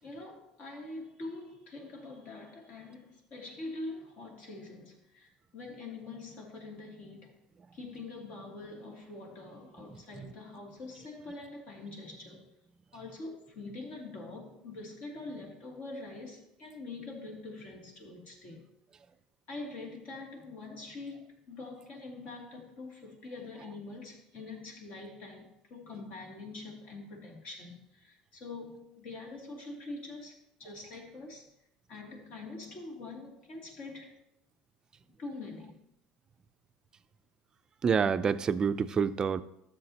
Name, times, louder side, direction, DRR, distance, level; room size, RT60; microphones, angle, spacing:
voice 1, 0.0-7.4 7.7-12.5 12.9-18.6 19.5-31.5 31.9-34.2 35.2-35.8, left 2 dB, 55° left, 0 dB, 2.7 m, -44 dB
voice 2, 37.8-39.4, right 6 dB, 30° right, 12 dB, 0.4 m, -27 dB
13.0 x 7.3 x 2.9 m, 0.80 s
supercardioid pair, 120°, 3 cm